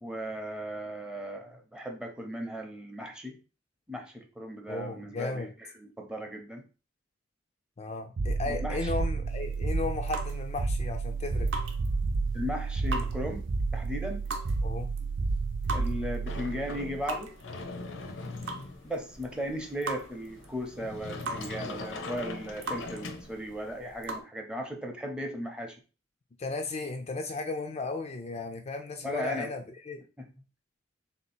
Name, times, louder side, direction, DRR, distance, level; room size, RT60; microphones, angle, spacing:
voice 1, 0.0-3.4 3.9-6.6 8.4-8.9 12.3-14.2 15.7-17.3 18.8-25.8 29.0-29.5 30.2-30.3, equal, 5° right, 3 dB, 0.7 m, -37 dB
voice 2, 4.7-5.5 7.8-11.5 14.6-14.9 26.4-30.0, left 3 dB, 35° left, 4 dB, 0.4 m, -35 dB
sound 1, 8.2-17.3, right 4 dB, 40° right, 0.3 m, -31 dB
sound 2, 9.3-24.2, right 2 dB, 75° right, 0.8 m, -42 dB
Sliding door, 16.3-23.7, left 2 dB, 75° left, 0.7 m, -42 dB
3.6 x 2.8 x 4.3 m, 0.33 s
head